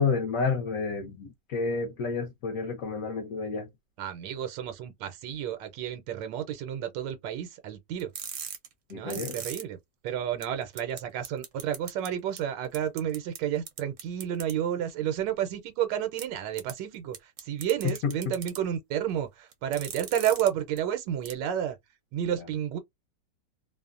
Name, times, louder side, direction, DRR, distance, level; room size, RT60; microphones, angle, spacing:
voice 1, 0.0-3.7 8.9-9.4 17.8-18.1 22.3-22.4, left 5 dB, 65° left, 0.8 m, -30 dB
voice 2, 4.0-8.1 8.9-9.8 10.0-21.8 22.1-22.8, right 10 dB, 85° right, 1.2 m, -31 dB
sound 1, 8.0-9.6 10.1-10.2 10.4-10.5 10.8-11.0 11.2-12.1 12.4-12.5 12.7-13.4 13.7-14.5 16.2-16.3 16.6-16.7 17.1-18.6 19.5-20.5 20.8-20.9 21.3-21.4, right 8 dB, 65° right, 0.8 m, -38 dB
2.9 x 2.0 x 2.4 m
omnidirectional pair, 1.9 m